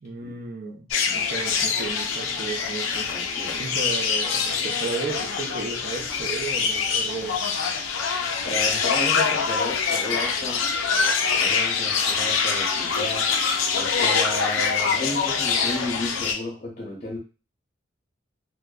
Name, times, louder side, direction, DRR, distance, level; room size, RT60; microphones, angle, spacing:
voice 1, 0.0-3.1 3.5-7.4, right 4 dB, 50° right, 0.5 m, -34 dB
sound 1, 0.9-16.3, left 5 dB, 80° left, 0.4 m, -24 dB
voice 2, 3.1-3.6 8.4-10.6 11.4-13.3 13.7-17.2, left 1 dB, 35° left, 0.7 m, -33 dB
2.6 x 2.1 x 2.3 m
head